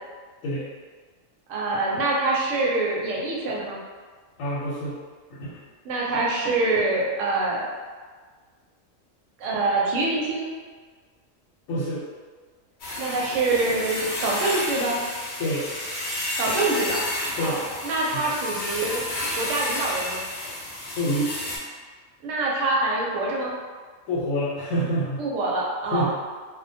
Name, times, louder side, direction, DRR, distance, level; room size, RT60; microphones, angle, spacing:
voice 1, 1.5-3.8 5.8-7.7 9.4-10.5 13.0-15.0 16.4-17.0 17.4-19.0 19.4-20.2 22.2-23.5 25.2-26.1, right 2 dB, 75° right, -3 dB, 0.9 m, -25 dB
voice 2, 4.4-5.0 5.3-5.6 11.7-12.0 15.4-15.7 17.4-17.6 18.1-18.3 20.8-21.3 24.1-25.2 25.9-26.1, equal, 85° left, -9 dB, 1.0 m, -27 dB
sound 1, 12.8-21.6, left 1 dB, 60° left, 0.5 m, -31 dB
2.2 x 2.2 x 2.6 m, 1.5 s
omnidirectional pair, 1.4 m